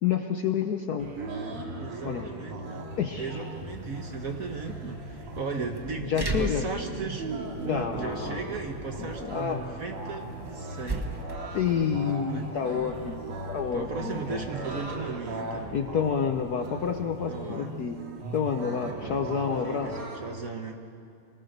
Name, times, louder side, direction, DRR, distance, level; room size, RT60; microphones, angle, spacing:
voice 1, 0.0-1.1 2.0-2.3 3.0-3.3 6.1-6.6 7.7-8.4 9.0-9.6 11.5-14.4 15.7-18.0 18.3-19.9, left 7 dB, 60° left, 5 dB, 1.0 m, -29 dB
sound 1, 1.0-20.2, right 2 dB, 90° right, 2.9 m, -38 dB
voice 2, 1.8-11.2 12.3-12.5 13.7-15.8 17.3-17.7 18.8-19.2 19.6-20.7, right 4 dB, 45° right, 4 dB, 1.4 m, -37 dB
sound 2, 3.5-18.9, right 1 dB, 20° right, 0.7 m, -41 dB
25.0 x 18.5 x 6.7 m, 2.4 s
omnidirectional pair, 2.4 m